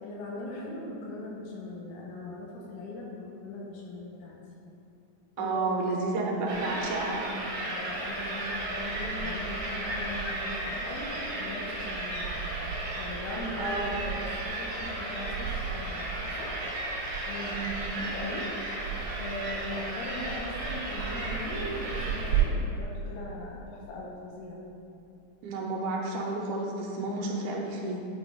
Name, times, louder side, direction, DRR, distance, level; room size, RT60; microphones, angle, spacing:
voice 1, 0.0-4.4 5.4-6.9 7.6-12.6 13.0-16.5 17.3-17.6 17.9-18.5 19.2-24.7, left 2 dB, 80° left, -3 dB, 2.3 m, -40 dB
voice 2, 5.4-7.5 13.6-14.0 17.5-17.8 25.4-28.1, right 3 dB, 85° right, -1 dB, 2.6 m, -31 dB
sound 1, 6.5-22.4, right 3 dB, 60° right, 1.9 m, -33 dB
9.0 x 5.0 x 2.3 m, 2.8 s
omnidirectional pair, 4.2 m